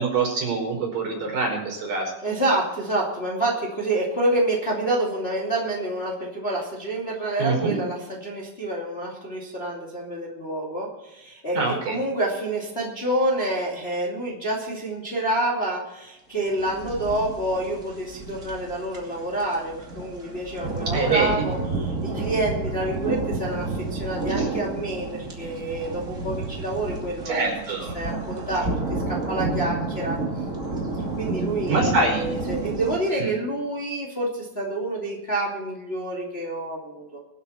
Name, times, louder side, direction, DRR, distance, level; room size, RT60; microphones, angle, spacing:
voice 1, 0.0-2.1 7.4-7.8 11.5-12.0 20.9-21.5 24.4-24.5 27.3-27.9 31.7-32.2 33.2-33.3, right 3 dB, 65° right, -1 dB, 6.4 m, -25 dB
voice 2, 2.2-11.6 11.9-27.5 27.9-30.2 31.2-37.2, right 1 dB, 20° left, -3 dB, 2.5 m, -28 dB
sound 1, 16.5-33.0, right 3 dB, 25° right, 2.6 m, -30 dB
23.5 x 8.4 x 4.3 m, 0.94 s
omnidirectional pair, 4.1 m